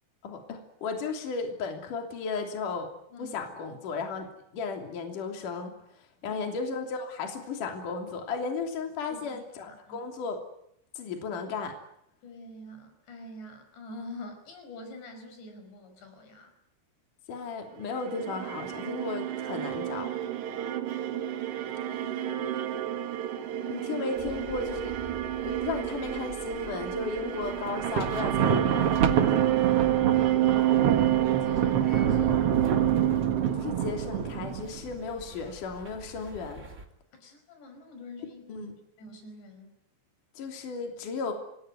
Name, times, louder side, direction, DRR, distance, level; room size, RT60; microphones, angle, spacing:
voice 1, 0.2-2.9 3.2-4.3 4.5-5.7 6.2-10.4 11.0-11.8 17.3-20.1 23.7-24.9 25.4-29.1 33.5-36.6 38.5-38.8 40.4-41.3, left 4 dB, 50° left, 3 dB, 4.3 m, -35 dB
voice 2, 3.7-4.0 6.2-6.4 9.1-10.0 12.2-16.5 21.4-22.5 22.8-23.0 23.3-23.9 30.2-32.5 37.1-38.7 39.0-39.8, left 1 dB, 90° left, 6 dB, 7.4 m, -47 dB
sound 1, 17.8-34.2, right 13 dB, 85° right, 4.1 m, -29 dB
sound 2, 24.1-36.9, right 2 dB, 25° right, 2.1 m, -48 dB
Thunder, 27.7-34.9, right 7 dB, 55° right, 1.8 m, -27 dB
26.5 x 20.0 x 9.5 m, 0.78 s
omnidirectional pair, 4.8 m